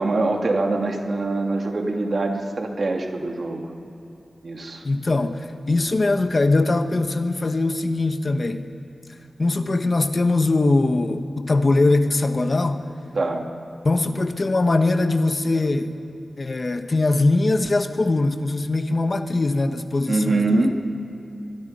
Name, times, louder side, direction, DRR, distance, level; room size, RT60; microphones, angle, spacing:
voice 1, 0.0-3.7 4.4-4.8 13.1-13.4 20.1-20.7, right 2 dB, 55° right, 2 dB, 2.4 m, -23 dB
voice 2, 4.8-8.7 9.4-12.8 13.8-15.9 16.4-20.7, left 2 dB, 40° left, 8 dB, 1.2 m, -21 dB
24.0 x 23.0 x 5.5 m, 2.8 s
wide cardioid pair, 105°, 0 cm